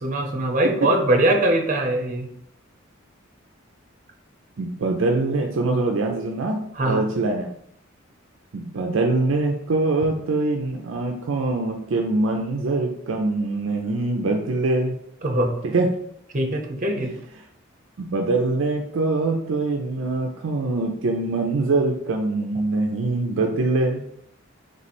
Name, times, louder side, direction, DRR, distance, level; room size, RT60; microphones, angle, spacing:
voice 1, 0.0-2.3 6.8-7.0 15.2-15.5 16.3-17.1, right 1 dB, 40° right, 3 dB, 0.8 m, -22 dB
voice 2, 4.6-7.5 8.5-15.0 15.6-16.0 18.0-24.0, right 2 dB, 65° right, 2 dB, 0.5 m, -23 dB
3.2 x 3.1 x 4.2 m, 0.71 s
head